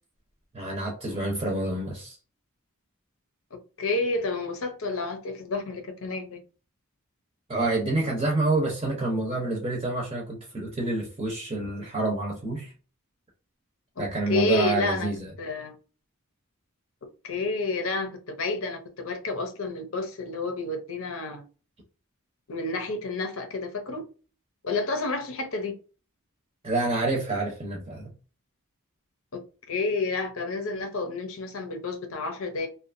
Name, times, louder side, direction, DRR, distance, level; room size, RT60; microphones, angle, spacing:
voice 1, 0.5-2.2 7.5-12.7 14.0-15.3 26.6-28.1, right 2 dB, 25° right, 0.6 m, -28 dB
voice 2, 3.8-6.4 14.0-15.1 15.4-15.8 17.2-21.4 22.5-24.1 24.6-25.7 29.3-29.4 29.7-32.7, left 3 dB, 65° left, 0.7 m, -30 dB
2.7 x 2.3 x 2.5 m
head